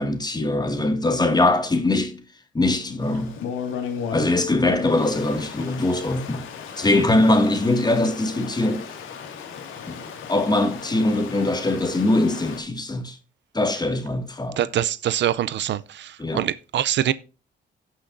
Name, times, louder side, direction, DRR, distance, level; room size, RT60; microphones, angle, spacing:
voice 1, 0.0-2.2 2.5-3.4 4.1-6.5 6.8-8.9 9.9-13.2 13.5-14.6 16.2-16.5, left 2 dB, 20° left, 2.1 m, -22 dB
Stream, 3.0-12.6, left 7 dB, 90° left, 2.2 m, -36 dB
voice 2, 14.6-17.1, right 11 dB, 65° right, 0.6 m, -24 dB
17.5 x 5.9 x 2.7 m
cardioid pair, 90°, 20 cm